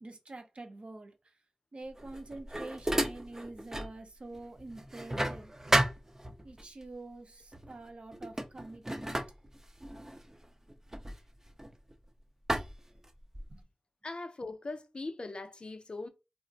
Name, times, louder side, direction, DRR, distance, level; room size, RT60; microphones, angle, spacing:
voice 1, 0.0-1.3 1.7-5.5 6.4-9.2 13.5-13.6, right 2 dB, 55° right, 0.7 m, -46 dB
sound 1, 1.9-4.0 4.3-6.6 7.5-7.8 8.1-12.0 12.5-13.6, right 1 dB, 20° right, 0.5 m, -34 dB
voice 2, 14.0-16.1, left 3 dB, 45° left, 0.5 m, -40 dB
2.4 x 2.0 x 3.9 m
wide cardioid pair, 65°, 2 cm